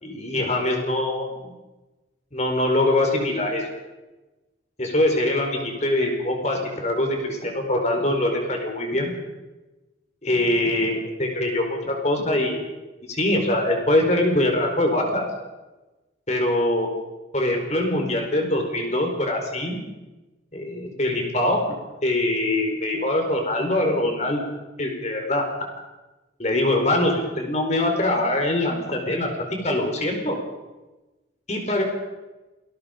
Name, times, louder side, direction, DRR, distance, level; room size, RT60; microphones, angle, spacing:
voice 1, 0.0-1.5 2.3-3.6 4.8-9.1 10.2-12.7 13.1-15.2 16.3-16.9 17.3-19.8 20.5-21.6 22.0-24.4 24.8-25.4 26.4-30.4 31.5-31.8, left 1 dB, 35° left, 3 dB, 4.7 m, -23 dB
28.0 x 19.5 x 5.3 m, 1.1 s
head